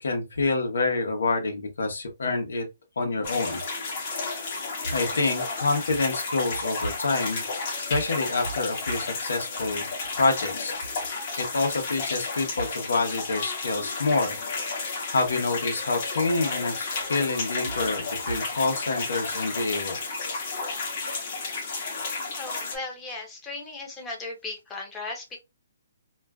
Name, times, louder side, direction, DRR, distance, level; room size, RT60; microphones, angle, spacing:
voice 1, 0.0-2.6 3.0-3.6 4.9-7.4 7.9-9.8 10.2-10.7 11.4-14.4 15.1-20.0, left 3 dB, 85° left, 0.9 m, -27 dB
sound 1, 3.2-22.8, left 4 dB, 40° left, 0.8 m, -32 dB
voice 2, 22.4-25.4, left 3 dB, 10° left, 0.6 m, -36 dB
2.4 x 2.3 x 2.3 m
hypercardioid pair, 165°, 0 cm